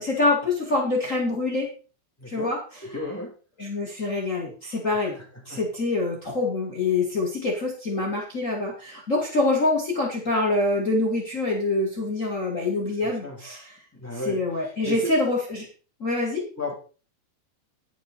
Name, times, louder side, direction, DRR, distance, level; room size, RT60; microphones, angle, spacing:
voice 1, 0.0-1.7 2.3-2.8 3.6-5.2 5.4-13.7 14.2-15.7 16.0-16.4, left 2 dB, 50° left, -1 dB, 0.9 m, -25 dB
voice 2, 2.2-2.5 2.8-3.3 4.9-5.2 5.5-5.6 13.0-13.4 13.9-15.1 16.6-16.7, left 1 dB, 5° left, -1 dB, 1.8 m, -34 dB
11.0 x 9.2 x 4.2 m, 0.37 s
omnidirectional pair, 5.3 m